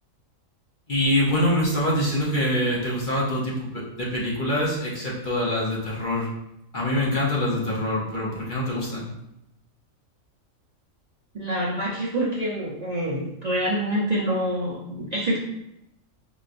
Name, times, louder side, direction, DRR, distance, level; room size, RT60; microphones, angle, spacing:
voice 1, 0.9-6.3 6.7-9.1, left 1 dB, 45° left, -5 dB, 0.9 m, -25 dB
voice 2, 11.3-15.4, right 1 dB, 40° right, -7 dB, 0.6 m, -26 dB
5.1 x 3.0 x 2.5 m, 0.84 s
omnidirectional pair, 1.4 m